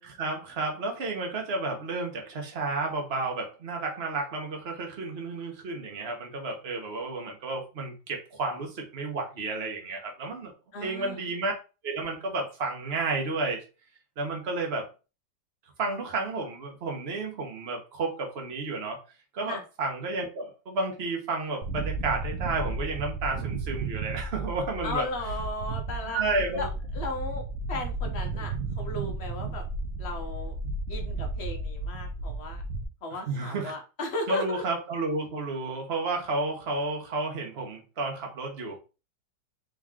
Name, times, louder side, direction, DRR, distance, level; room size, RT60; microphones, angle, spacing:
voice 1, 0.0-10.5 10.8-11.5 11.8-13.6 14.2-14.9 15.8-19.0 19.3-25.1 26.1-26.7 33.3-33.8 34.3-38.8, right 3 dB, 40° right, 2 dB, 1.1 m, -31 dB
voice 2, 10.7-11.2 19.5-19.6 24.8-26.2 26.6-26.7 26.9-27.4 27.7-29.6 30.0-30.5 30.9-32.6 33.0-34.6, left 2 dB, 65° left, 3 dB, 0.6 m, -35 dB
sound 1, 21.6-32.8, right 3 dB, 65° right, 0.8 m, -33 dB
3.7 x 3.0 x 3.6 m, 0.32 s
omnidirectional pair, 2.0 m